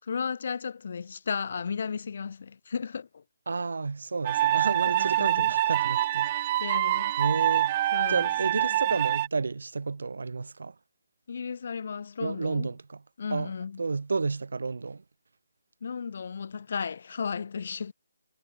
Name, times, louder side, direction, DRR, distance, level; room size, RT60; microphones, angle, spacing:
voice 1, 0.0-3.2 4.9-5.5 6.6-7.2 7.9-8.8 11.3-12.7 13.2-13.8 15.8-17.9, left 6 dB, 60° left, 7.7 m, -34 dB
voice 2, 3.5-6.5 7.2-7.8 8.1-10.7 12.2-13.0 13.3-15.0, right 4 dB, 80° right, 7.6 m, -31 dB
sound 1, 4.2-9.3, right 14 dB, 30° right, 1.8 m, -25 dB
hypercardioid pair, 160°, 0 cm